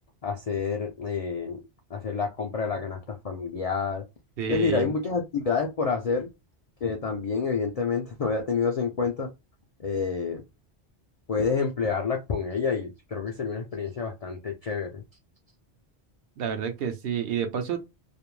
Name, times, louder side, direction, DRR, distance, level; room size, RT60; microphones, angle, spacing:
voice 1, 0.2-1.6 1.9-4.0 4.5-6.3 6.8-9.3 9.8-10.4 11.3-15.0, left 5 dB, 65° left, 0.3 m, -28 dB
voice 2, 4.4-4.9 16.4-17.8, right 7 dB, 65° right, 0.7 m, -29 dB
2.5 x 2.1 x 3.0 m
omnidirectional pair, 1.1 m